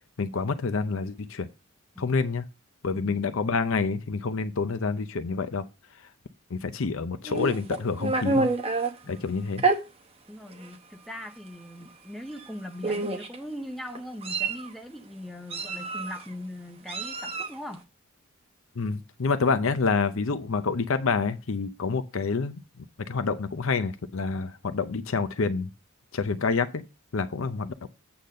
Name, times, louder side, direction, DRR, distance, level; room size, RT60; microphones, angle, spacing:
voice 1, 0.2-1.5 2.0-2.4 2.8-5.6 6.5-8.5 9.1-9.6 18.8-22.6 23.1-25.7 26.1-26.8 27.1-27.9, left 4 dB, 65° left, 0.6 m, -27 dB
Meow, 7.3-8.9 9.6-9.8 10.6-10.7 11.1-11.3 12.3-12.5 12.8-13.4 14.0-14.7 15.5-16.2 16.9-17.6, right 3 dB, 25° right, 0.9 m, -28 dB
voice 2, 10.3-17.8, left 1 dB, ahead, 0.6 m, -40 dB
8.5 x 3.9 x 6.5 m
head